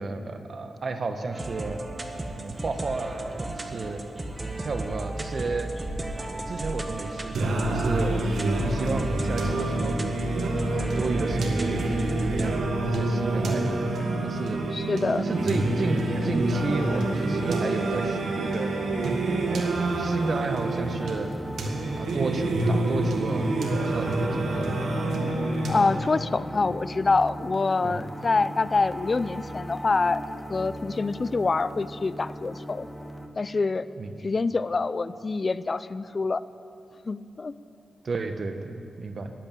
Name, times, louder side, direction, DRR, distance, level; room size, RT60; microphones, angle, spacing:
voice 1, 0.0-1.8 2.4-4.0 4.4-5.7 6.2-8.2 8.6-10.2 10.7-12.6 12.8-13.8 14.2-14.6 15.2-18.7 19.4-21.3 21.7-24.8 27.8-28.0 34.0-34.2 38.0-39.3, right 3 dB, 55° right, 7 dB, 1.3 m, -32 dB
sound 1, 1.3-12.5, right 1 dB, 20° right, 1.5 m, -34 dB
Singing, 7.3-26.3, right 2 dB, 80° right, 1.8 m, -27 dB
voice 2, 14.7-15.2 25.7-30.2 30.5-32.9 33.4-33.9 34.2-36.4 37.1-37.5, left 3 dB, 40° left, 16 dB, 0.5 m, -26 dB
sound 2, 15.3-33.3, equal, 5° right, 1.4 m, -37 dB
15.0 x 10.5 x 8.9 m, 2.7 s
cardioid pair, 65°, 0 cm